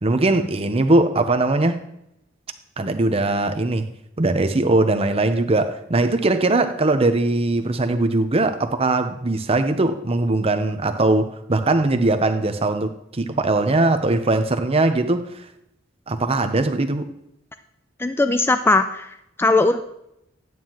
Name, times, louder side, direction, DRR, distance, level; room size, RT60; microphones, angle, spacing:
voice 1, 0.0-1.8 2.8-3.9 4.2-15.3 16.1-17.1, right 2 dB, 30° right, 0.7 m, -20 dB
voice 2, 18.0-19.8, left 2 dB, 10° left, 0.3 m, -19 dB
11.0 x 9.2 x 3.0 m
head